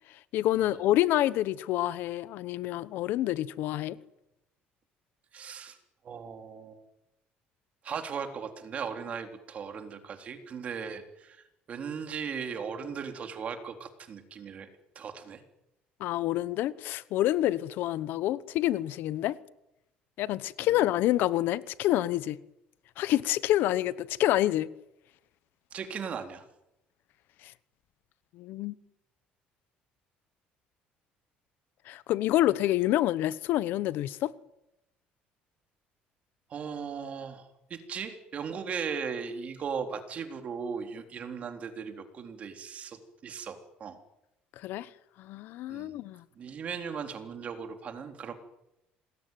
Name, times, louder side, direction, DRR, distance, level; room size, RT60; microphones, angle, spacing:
voice 1, 0.3-4.0 16.0-19.4 20.2-22.4 23.0-24.7 27.4-27.5 28.3-28.7 31.9-34.3 44.6-44.9 45.2-46.2, left 14 dB, 65° left, 1.0 m, -27 dB
voice 2, 5.3-5.8 6.0-6.8 7.8-14.7 15.0-15.4 20.6-20.8 25.7-26.4 36.5-44.0 45.7-45.9 46.4-48.3, right 6 dB, 40° right, 3.8 m, -38 dB
27.0 x 20.5 x 9.3 m
cardioid pair, 140°, 4 cm